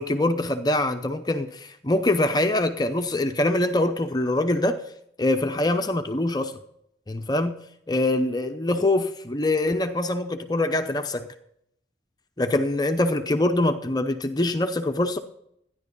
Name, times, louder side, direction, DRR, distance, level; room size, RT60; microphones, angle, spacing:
voice 1, 0.0-4.8 5.2-6.6 7.1-11.3 12.4-15.2, left 1 dB, 20° left, 0.7 m, -24 dB
13.5 x 10.5 x 5.4 m
head